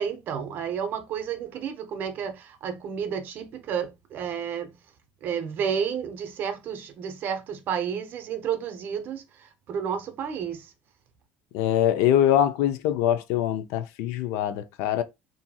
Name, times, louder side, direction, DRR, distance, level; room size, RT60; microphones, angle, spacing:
voice 1, 0.0-4.8 5.2-10.7, right 7 dB, 45° right, 0.6 m, -31 dB
voice 2, 11.5-15.0, left 11 dB, 75° left, 0.4 m, -23 dB
2.8 x 2.6 x 2.2 m
cardioid pair, 135°, 5 cm